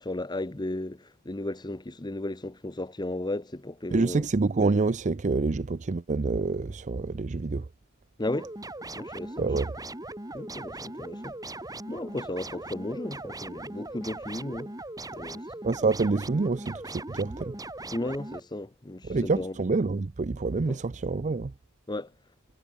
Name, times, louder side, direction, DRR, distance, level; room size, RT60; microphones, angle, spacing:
voice 1, 0.0-4.3 8.2-8.5 9.0-9.4 10.3-11.6 11.9-14.7 15.1-15.4 17.9-19.6 20.7-20.8 21.9-22.1, left 1 dB, 20° left, 1.0 m, -35 dB
voice 2, 3.9-7.6 9.4-9.7 15.6-17.5 19.1-21.5, right 3 dB, 35° right, 0.5 m, -27 dB
sound 1, 8.3-18.4, right 2 dB, 15° right, 5.7 m, -39 dB
head